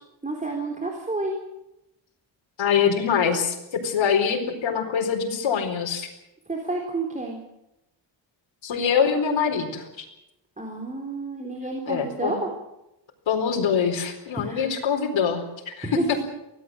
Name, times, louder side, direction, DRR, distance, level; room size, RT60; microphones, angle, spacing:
voice 1, 0.2-1.4 6.5-7.4 10.6-12.5 14.4-14.7 15.8-16.2, right 2 dB, 15° right, 0 dB, 3.8 m, -30 dB
voice 2, 2.6-6.1 8.6-10.1 11.9-12.4 13.3-16.2, left 7 dB, 75° left, 0 dB, 4.5 m, -24 dB
24.5 x 17.5 x 7.9 m, 0.90 s
wide cardioid pair, 145°, 46 cm